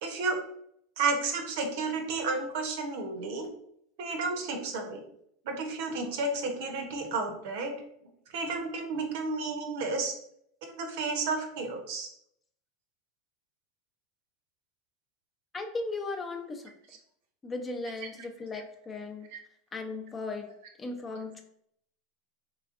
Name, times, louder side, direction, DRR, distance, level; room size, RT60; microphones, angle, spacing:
voice 1, 0.0-0.4 1.0-3.5 4.0-5.0 5.4-7.7 8.3-10.1 10.8-12.1, right 3 dB, 70° right, 4 dB, 0.7 m, -32 dB
voice 2, 15.5-16.7 17.4-19.3 19.7-20.5 20.8-21.4, left 3 dB, 20° left, 5 dB, 0.5 m, -37 dB
3.4 x 3.1 x 2.5 m, 0.71 s
hypercardioid pair, 105°, 0 cm